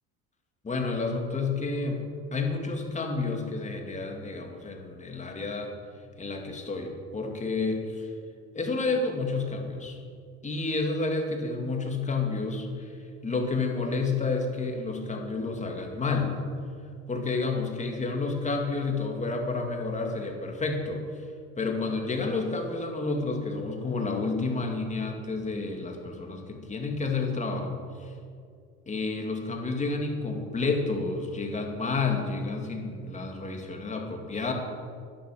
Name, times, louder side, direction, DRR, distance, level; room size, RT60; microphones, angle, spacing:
voice 1, 0.6-2.1 2.3-5.7 6.2-8.1 8.5-10.0 10.4-16.4 17.1-21.0 21.6-28.1 28.9-34.5, left 3 dB, 25° left, 2 dB, 2.3 m, -30 dB
12.5 x 10.5 x 6.2 m, 2.3 s
supercardioid pair, 100°, 30 cm